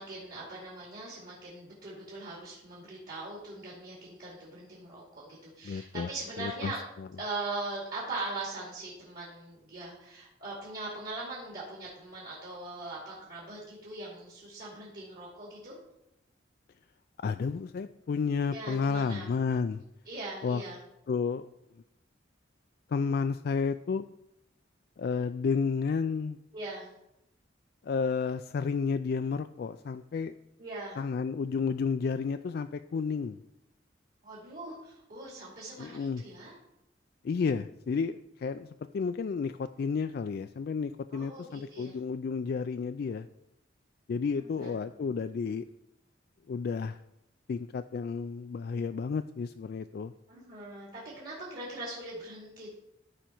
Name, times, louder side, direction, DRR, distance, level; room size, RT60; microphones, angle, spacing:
voice 1, 0.0-6.8 7.2-15.8 18.5-19.3 20.1-20.8 26.5-26.9 30.6-31.0 34.2-36.5 41.1-42.0 44.3-44.8 50.3-52.7, right 2 dB, 50° right, -5 dB, 2.5 m, -41 dB
voice 2, 5.6-6.1 6.4-6.7 7.0-7.1 17.2-19.8 20.4-20.6 21.1-21.5 22.9-24.0 25.0-26.4 27.8-30.3 31.0-33.4 35.8-36.2 37.2-38.7 38.9-43.3 44.1-45.6 46.5-47.0 47.5-50.1, left 5 dB, 55° left, 9 dB, 0.3 m, -31 dB
14.0 x 5.2 x 4.4 m, 0.85 s
head